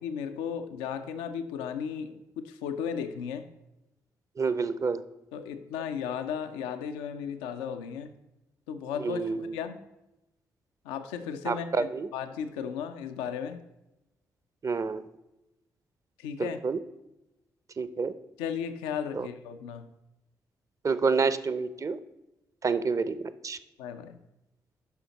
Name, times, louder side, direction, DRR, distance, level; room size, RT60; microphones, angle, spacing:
voice 1, 0.0-3.5 5.3-8.1 8.7-9.8 10.8-13.6 16.2-16.6 18.4-19.9 23.8-24.2, left 7 dB, 85° left, 9 dB, 0.4 m, -35 dB
voice 2, 4.4-5.0 9.0-9.6 11.5-12.1 14.6-15.1 16.4-16.8 17.8-18.1 19.1-19.3 20.8-22.0 22.6-23.6, right 4 dB, 40° right, 14 dB, 0.6 m, -28 dB
10.0 x 5.6 x 4.0 m, 0.94 s
hypercardioid pair, 40°, 8 cm